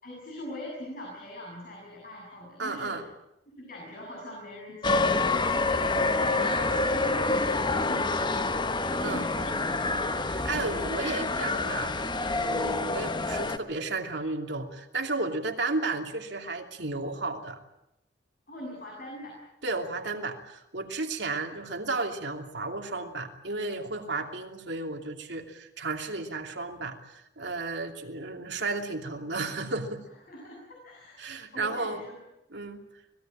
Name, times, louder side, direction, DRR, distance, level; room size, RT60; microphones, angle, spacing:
voice 1, 0.0-3.0 3.6-8.3 8.8-10.3 18.5-19.4 30.3-32.2, left 1 dB, 50° left, -2 dB, 7.6 m, -42 dB
voice 2, 2.6-3.0 9.0-9.3 10.4-17.6 19.6-30.0 31.2-32.0 32.5-32.8, right 3 dB, 70° right, 4 dB, 2.8 m, -33 dB
sound 1, 4.8-13.6, left 3 dB, 25° left, 1.0 m, -27 dB
25.0 x 19.5 x 8.8 m, 0.87 s
head